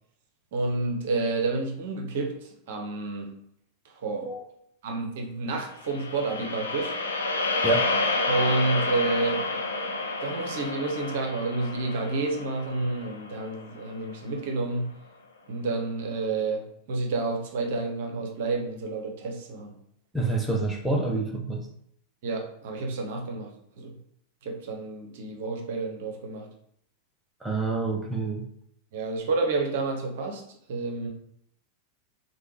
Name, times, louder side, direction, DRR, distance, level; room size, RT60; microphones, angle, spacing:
voice 1, 0.5-3.4 3.8-4.3 4.8-6.9 8.3-9.4 10.2-15.0 15.5-19.8 22.2-23.5 23.8-24.0 24.4-26.5 28.9-31.1, right 3 dB, 55° right, 2 dB, 0.6 m, -30 dB
sound 1, 5.8-14.1, left 3 dB, 75° left, 0.4 m, -30 dB
voice 2, 20.1-21.7 27.4-28.4, right 3 dB, 5° right, 1 dB, 0.5 m, -27 dB
3.2 x 2.1 x 3.1 m, 0.69 s
figure-of-eight pair, 90°, 0 cm